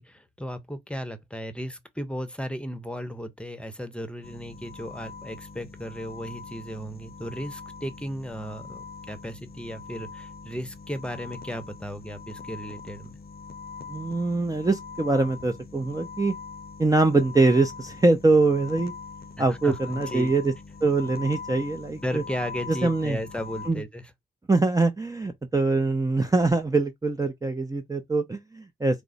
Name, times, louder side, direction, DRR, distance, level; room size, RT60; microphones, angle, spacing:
voice 1, 0.0-13.1 19.4-20.3 22.0-24.1, equal, 5° left, 0.8 m, -35 dB
sound 1, 4.2-23.7, left 5 dB, 50° left, 0.7 m, -42 dB
voice 2, 13.9-16.3 16.8-18.9 19.4-20.4 20.8-22.2 22.8-23.2 23.7-23.8 24.5-29.0, right 3 dB, 15° right, 0.6 m, -23 dB
4.6 x 2.0 x 3.9 m
cardioid pair, 75°, 20 cm